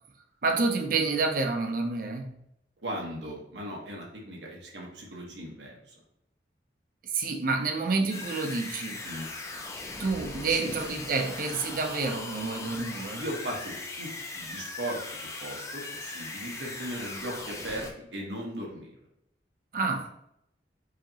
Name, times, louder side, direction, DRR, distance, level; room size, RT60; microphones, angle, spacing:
voice 1, 0.4-2.4 7.1-9.0 10.0-13.2 19.7-20.1, right 3 dB, 50° right, 4 dB, 0.6 m, -28 dB
voice 2, 2.8-6.0 9.0-9.3 10.4-10.7 13.2-15.0 15.4-18.9, right 1 dB, 90° right, -1 dB, 1.2 m, -37 dB
sound 1, 8.1-17.9, left 3 dB, 20° left, 0.5 m, -39 dB
4.8 x 2.9 x 2.8 m, 0.77 s
head